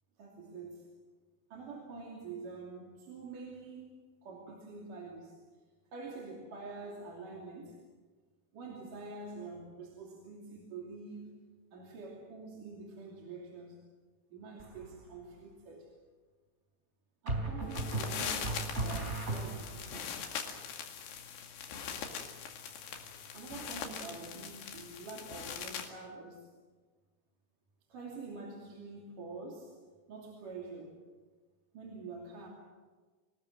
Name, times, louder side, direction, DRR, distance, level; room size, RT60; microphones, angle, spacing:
voice 1, 0.2-0.9 1.5-5.4 5.9-7.8 8.5-11.3 11.7-13.9 14.3-15.9 17.2-18.6 18.8-20.2 23.3-26.5 27.9-29.7 30.1-31.0 31.7-32.5, right 3 dB, 55° right, -1 dB, 4.1 m, -46 dB
sound 1, 14.6-15.1 17.3-19.9, right 2 dB, 20° right, 3.2 m, -36 dB
sound 2, 17.6-25.9, left 7 dB, 75° left, 4.2 m, -42 dB
26.0 x 19.0 x 7.8 m, 1.4 s
omnidirectional pair, 4.9 m